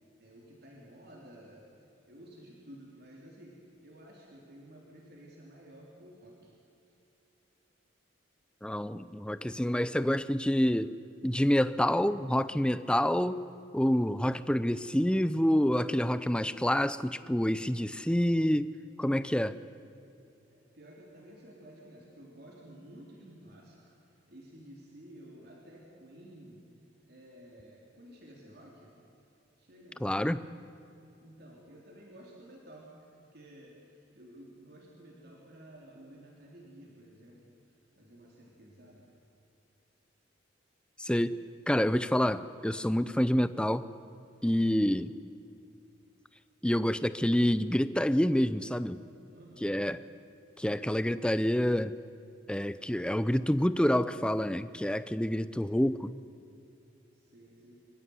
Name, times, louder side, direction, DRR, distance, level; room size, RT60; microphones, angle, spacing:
voice 1, 0.2-1.7 2.1-6.5 20.5-26.6 27.1-28.9 29.6-30.1 31.2-37.5 38.0-39.1 49.3-49.7 57.1-57.8, right 1 dB, 55° right, -3 dB, 3.8 m, -53 dB
voice 2, 8.6-11.0 11.2-13.4 13.7-18.7 19.0-19.6 30.0-30.4 41.0-41.4 41.7-43.9 44.4-45.1 46.6-49.0 49.6-50.0 50.6-51.9 52.5-56.2, equal, 5° left, 14 dB, 0.6 m, -27 dB
26.0 x 15.0 x 9.7 m, 2.6 s
head